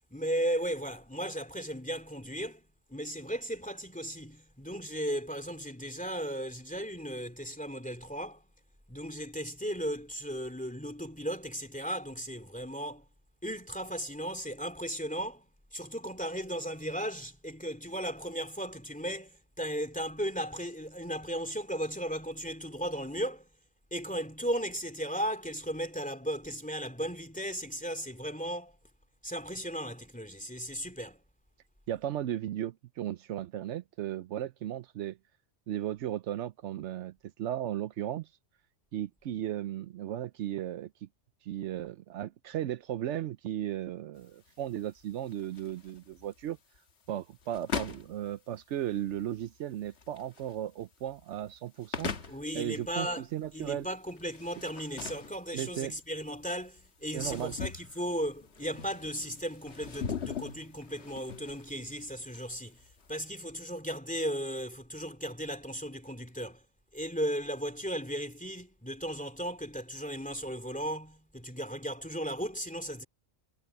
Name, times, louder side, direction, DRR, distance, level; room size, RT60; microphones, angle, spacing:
voice 1, 0.1-2.6 2.9-8.4 8.9-13.0 13.4-23.5 23.9-28.8 29.2-31.2 52.3-53.3 53.5-62.8 63.1-66.6 66.9-73.0, equal, 5° left, 2.6 m, -36 dB
voice 2, 31.9-35.2 35.7-38.3 38.9-41.1 41.4-46.6 47.1-52.1 52.5-53.9 55.5-55.9 57.1-57.5, right 11 dB, 80° right, 0.9 m, -36 dB
sound 1, 44.2-63.3, left 6 dB, 70° left, 1.6 m, -42 dB
omnidirectional pair, 1.2 m